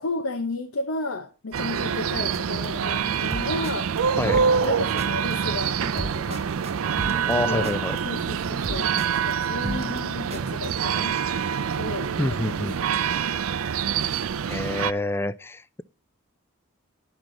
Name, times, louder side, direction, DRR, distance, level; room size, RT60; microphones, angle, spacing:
voice 1, 0.0-3.9 4.6-6.5 7.4-7.7 8.0-11.2 11.7-13.0, left 2 dB, 70° left, 0.7 m, -33 dB
sound 1, 1.5-14.9, right 7 dB, 80° right, 0.5 m, -26 dB
sound 2, 2.3-10.9, right 2 dB, 30° right, 0.8 m, -36 dB
voice 2, 7.3-8.0 12.2-12.8 14.5-15.8, left 2 dB, 10° left, 0.3 m, -27 dB
11.5 x 6.0 x 3.7 m
head